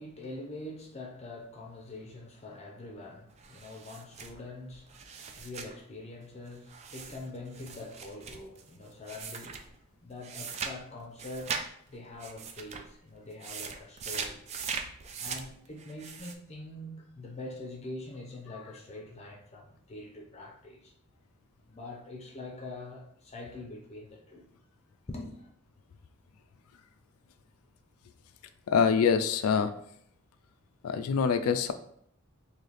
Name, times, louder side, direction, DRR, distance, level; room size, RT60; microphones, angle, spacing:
voice 1, 0.0-9.7 10.0-14.4 15.2-20.9 21.7-24.5 25.1-25.5, left 2 dB, 30° left, 0.5 m, -44 dB
sound 1, 3.4-5.8 6.7-9.8 10.2-11.6 11.9-12.9 13.3-16.3, right 6 dB, 30° right, 0.3 m, -40 dB
voice 2, 28.7-29.7 30.8-31.7, left 6 dB, 90° left, 0.4 m, -25 dB
3.2 x 2.8 x 4.0 m
head